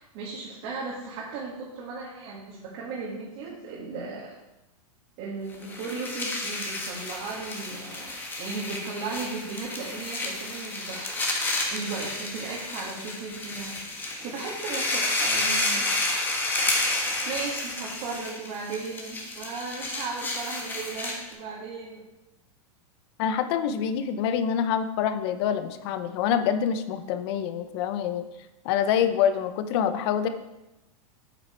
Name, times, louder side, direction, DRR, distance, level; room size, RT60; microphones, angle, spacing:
voice 1, 0.0-4.4 5.2-11.3 11.7-16.2 16.7-22.0, right 4 dB, 45° right, -5 dB, 2.0 m, -36 dB
sound 1, 5.5-21.3, left 2 dB, 10° left, 1.3 m, -31 dB
voice 2, 23.2-28.3 28.6-30.3, left 8 dB, 45° left, 10 dB, 0.8 m, -26 dB
8.1 x 7.5 x 4.5 m, 0.98 s
supercardioid pair, 155°, 18 cm